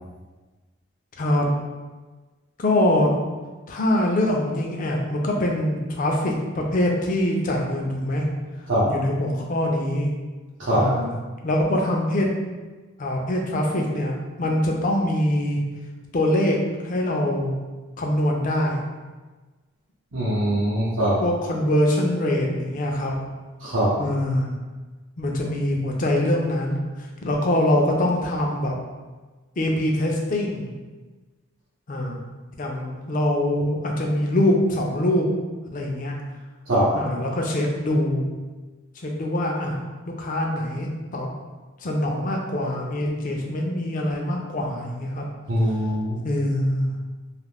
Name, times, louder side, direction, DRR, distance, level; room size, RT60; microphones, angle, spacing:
voice 1, 1.2-1.5 2.6-3.1 3.7-8.3 8.9-10.1 10.7-11.1 11.4-12.3 13.0-15.6 16.1-16.6 16.8-17.6 18.0-18.8 21.2-23.2 24.0-24.5 25.2-28.7 29.6-30.7 31.9-32.2 32.6-35.3 35.7-36.1 36.9-38.2 39.0-41.3 41.8-45.3 46.2-47.0, left 1 dB, 40° left, 0 dB, 0.4 m, -23 dB
voice 2, 20.1-21.2 23.6-23.9 36.7-36.9 45.5-46.2, equal, 65° right, -10 dB, 0.7 m, -22 dB
2.5 x 2.4 x 3.4 m, 1.3 s
head